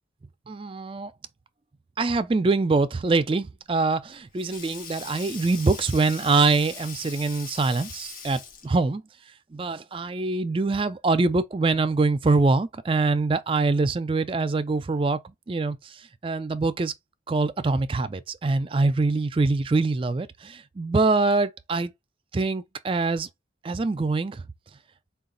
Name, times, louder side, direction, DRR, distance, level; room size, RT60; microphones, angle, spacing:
voice 1, 0.5-1.1 2.0-9.0 9.5-15.2 15.5-15.8 16.2-16.9 17.3-21.9 22.3-23.3 23.6-24.4, right 3 dB, 30° right, 0.3 m, -24 dB
Sink (filling or washing), 3.7-8.9, left 6 dB, 50° left, 0.6 m, -41 dB
3.9 x 2.3 x 3.7 m
head